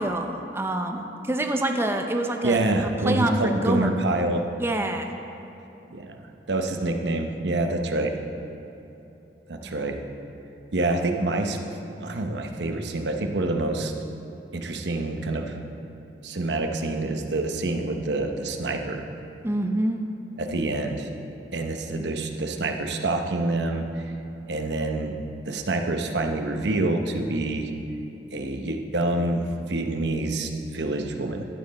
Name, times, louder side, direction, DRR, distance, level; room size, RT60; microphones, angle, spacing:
voice 1, 0.0-3.9 4.6-5.1 9.6-9.8 19.4-20.0, right 1 dB, 15° right, 4 dB, 0.6 m, -26 dB
voice 2, 2.4-4.4 5.9-6.2 6.5-8.2 9.5-10.0 10.7-11.6 12.0-13.9 14.5-15.6 16.2-19.0 20.4-21.1 21.5-24.0 24.5-25.2 25.5-27.7 28.3-31.5, right 2 dB, 75° right, 4 dB, 0.8 m, -27 dB
13.0 x 7.5 x 4.2 m, 3.0 s
head